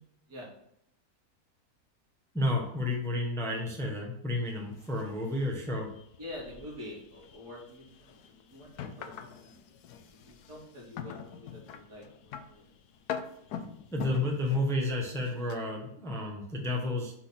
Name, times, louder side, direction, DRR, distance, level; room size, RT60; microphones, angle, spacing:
voice 1, 2.3-5.9 13.9-17.1, left 1 dB, ahead, -1 dB, 1.1 m, -31 dB
sound 1, 4.5-15.6, left 7 dB, 70° left, 1.2 m, -44 dB
voice 2, 6.2-9.2 9.4-9.6 10.0-12.7, left 1 dB, 70° right, -5 dB, 3.2 m, -46 dB
6.2 x 4.1 x 5.9 m, 0.74 s
omnidirectional pair, 1.8 m